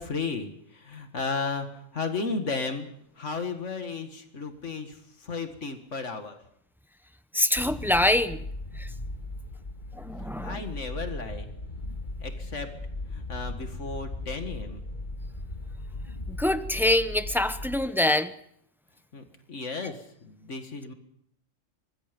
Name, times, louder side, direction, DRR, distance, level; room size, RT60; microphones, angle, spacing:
voice 1, 0.0-1.7 1.9-2.9 3.2-6.4 10.4-11.5 12.2-12.7 13.1-14.8 19.1-20.9, left 4 dB, 70° left, 6 dB, 2.2 m, -34 dB
voice 2, 7.3-8.4 8.8-8.9 9.9-10.7 16.3-18.3, left 1 dB, ahead, 11 dB, 0.8 m, -25 dB
sound 1, 7.5-17.9, left 2 dB, 40° left, 2.1 m, -37 dB
24.5 x 20.0 x 5.3 m, 0.70 s
omnidirectional pair, 1.3 m